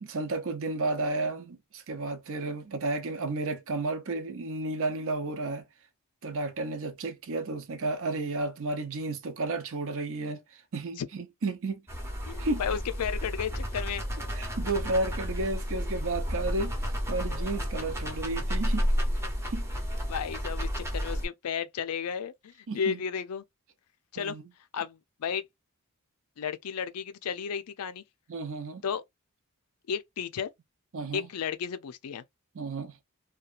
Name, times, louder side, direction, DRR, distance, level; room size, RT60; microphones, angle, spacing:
voice 1, 0.0-5.7 6.2-11.8 12.4-12.6 14.3-18.9 19.5-19.7 22.7-23.0 24.2-24.4 28.3-28.8 30.9-31.3 32.5-33.0, right 2 dB, 65° right, 0.6 m, -32 dB
sound 1, 11.9-21.3, equal, 10° right, 0.7 m, -31 dB
voice 2, 12.3-14.0 20.1-23.4 24.1-24.4 24.7-25.4 26.4-28.0 28.8-29.0 29.9-30.5 31.1-32.2, left 7 dB, 80° left, 0.4 m, -33 dB
2.8 x 2.3 x 2.4 m
head